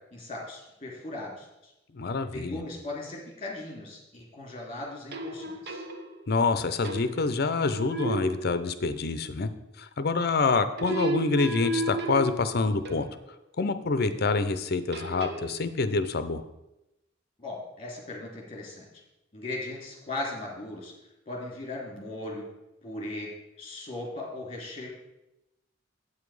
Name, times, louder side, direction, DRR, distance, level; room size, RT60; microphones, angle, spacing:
voice 1, 0.1-1.7 2.3-5.8 14.0-14.2 17.4-18.9 19.3-20.9 21.3-22.5 22.8-23.3 23.6-24.9, left 2 dB, 30° left, -1 dB, 2.9 m, -38 dB
voice 2, 1.9-2.6 6.3-9.5 9.8-13.1 13.6-16.4, left 3 dB, 55° left, 11 dB, 0.6 m, -26 dB
sound 1, 5.1-6.4 6.8-7.4 7.7-9.1 10.8-13.2 14.9-15.6, right 1 dB, 60° right, 0.9 m, -34 dB
8.3 x 7.4 x 4.8 m, 0.92 s
head